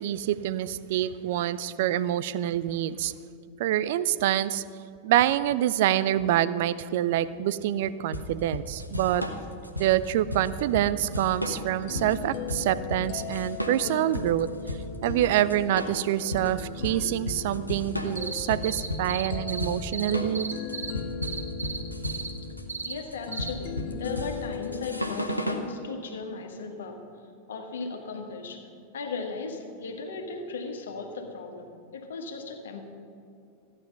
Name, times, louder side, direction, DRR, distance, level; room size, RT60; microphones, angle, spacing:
voice 1, 0.0-3.1 3.6-4.6 5.0-9.3 9.8-14.5 15.0-20.6, right 12 dB, 50° right, 16 dB, 0.4 m, -26 dB
sound 1, 8.1-25.7, left 1 dB, 90° left, 1.0 m, -34 dB
sound 2, 11.4-25.4, left 8 dB, 45° left, 0.4 m, -39 dB
sound 3, 18.2-19.7 19.9-20.9 21.2-21.8 22.0-22.3 22.7-22.9 23.3-23.5, right 5 dB, 75° right, 1.1 m, -34 dB
voice 2, 22.8-27.0 27.5-32.8, left 4 dB, 65° left, 4 dB, 1.5 m, -37 dB
14.5 x 9.7 x 5.5 m, 2.5 s
figure-of-eight pair, 90°, 0 cm